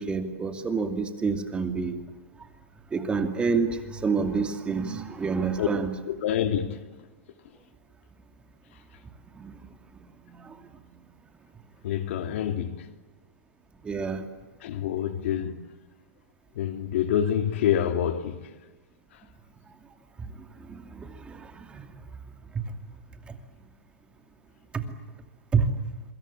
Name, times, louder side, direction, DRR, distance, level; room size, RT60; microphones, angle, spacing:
voice 1, 0.0-2.0 2.9-5.9 9.4-9.5 13.8-14.2 20.7-20.8 21.3-21.4 21.7-21.8 24.7-24.8 25.5-25.7, right 5 dB, 15° right, 2.5 m, -27 dB
voice 2, 6.1-6.8 11.8-12.9 14.6-15.6 16.5-18.5, left 10 dB, 60° left, 2.8 m, -27 dB
27.0 x 25.0 x 8.6 m
hypercardioid pair, 140°, 7 cm